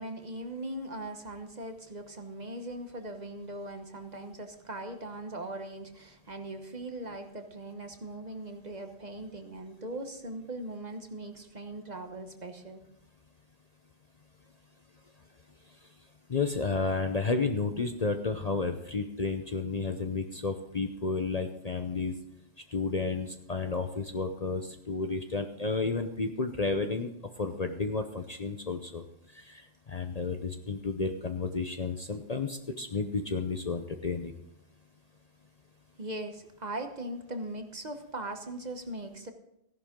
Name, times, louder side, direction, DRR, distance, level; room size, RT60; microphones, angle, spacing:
voice 1, 0.0-12.8 36.0-39.3, right 1 dB, 40° right, 6 dB, 1.1 m, -40 dB
voice 2, 16.3-22.1 22.7-27.1 27.4-29.0 29.3-34.3, left 4 dB, 35° left, 6 dB, 0.8 m, -32 dB
15.5 x 11.0 x 3.8 m, 0.82 s
omnidirectional pair, 1.3 m